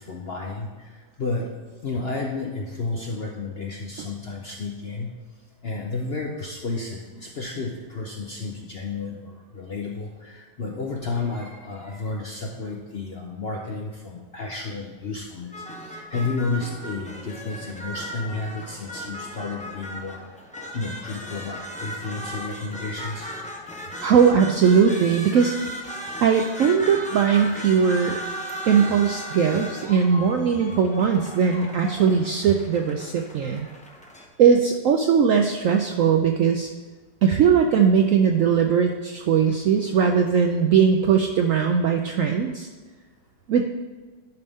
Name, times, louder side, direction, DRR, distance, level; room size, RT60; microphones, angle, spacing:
voice 1, 0.0-5.1 5.6-20.4 20.7-23.3 33.6-33.7 39.4-39.6, left 3 dB, 55° left, 0 dB, 0.7 m, -32 dB
sound 1, 15.5-34.3, equal, 10° left, 0.4 m, -37 dB
voice 2, 24.0-25.6 26.2-28.2 28.7-33.7 34.4-36.7 37.2-42.7 43.5-43.6, right 6 dB, 75° right, 4 dB, 0.7 m, -19 dB
11.0 x 5.3 x 3.5 m, 1.3 s
omnidirectional pair, 1.9 m